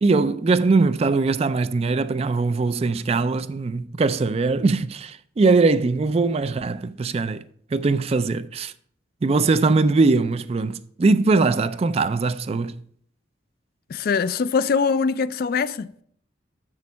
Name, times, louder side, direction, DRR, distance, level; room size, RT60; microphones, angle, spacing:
voice 1, 0.0-7.4 7.7-8.7 9.2-12.8, right 3 dB, 35° right, 0.3 m, -21 dB
voice 2, 13.9-15.9, left 5 dB, 50° left, 0.3 m, -22 dB
7.3 x 6.3 x 5.4 m
head